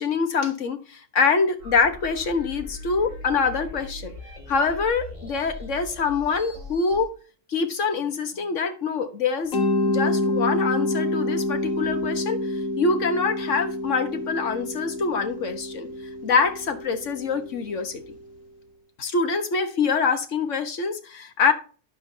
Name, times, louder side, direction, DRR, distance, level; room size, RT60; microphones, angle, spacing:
voice 1, 0.0-4.1 4.5-7.1 7.5-9.5 9.9-12.5 12.8-15.9 16.2-18.0 19.0-21.5, left 5 dB, 65° left, 1.5 m, -25 dB
sound 1, 1.6-7.0, left 2 dB, 25° right, 6.1 m, -40 dB
Mallet percussion, 9.5-18.3, left 2 dB, 85° left, 1.6 m, -28 dB
11.5 x 8.5 x 2.7 m
omnidirectional pair, 1.4 m